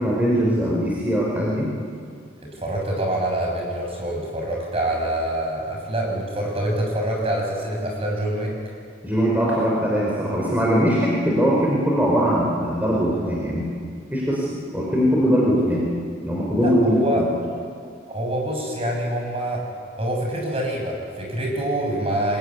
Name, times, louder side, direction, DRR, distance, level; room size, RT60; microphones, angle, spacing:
voice 1, 0.0-1.7 9.0-13.7 14.1-14.5 14.7-15.8 16.2-17.3, equal, 10° right, -4 dB, 4.5 m, -21 dB
voice 2, 2.4-8.5 16.5-17.2 18.1-19.6 20.0-22.4, right 1 dB, 35° right, 0 dB, 6.9 m, -26 dB
26.0 x 21.0 x 9.6 m, 2.2 s
head